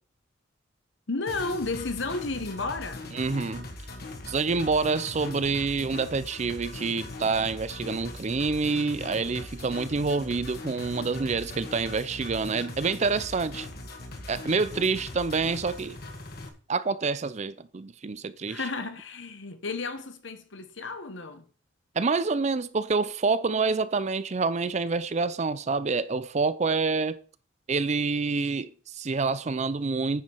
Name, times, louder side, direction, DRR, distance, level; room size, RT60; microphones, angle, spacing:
voice 1, 1.1-3.1 18.5-21.4, left 3 dB, 65° left, 1.2 m, -33 dB
sound 1, 1.3-16.5, left 2 dB, 50° left, 1.5 m, -40 dB
voice 2, 3.1-3.7 4.3-13.7 14.3-16.0 16.7-18.6 22.0-27.2 27.7-30.2, right 4 dB, 35° right, 0.5 m, -27 dB
9.4 x 5.1 x 5.4 m
head